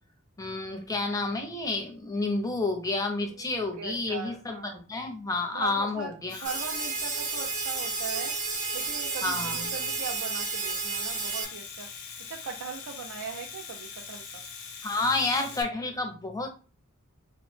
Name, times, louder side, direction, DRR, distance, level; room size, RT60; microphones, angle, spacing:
voice 1, 0.4-6.4 9.2-9.7 14.8-16.5, left 2 dB, 15° left, 5 dB, 0.5 m, -30 dB
voice 2, 3.3-4.8 5.5-6.2 6.4-8.3 8.7-11.9 12.3-14.4, right 5 dB, 90° right, 2 dB, 0.4 m, -40 dB
Domestic sounds home sounds, 6.1-15.6, left 6 dB, 90° left, 0.6 m, -42 dB
sound 1, 6.4-11.4, right 4 dB, 35° right, 0.6 m, -32 dB
2.8 x 2.0 x 3.1 m, 0.35 s
head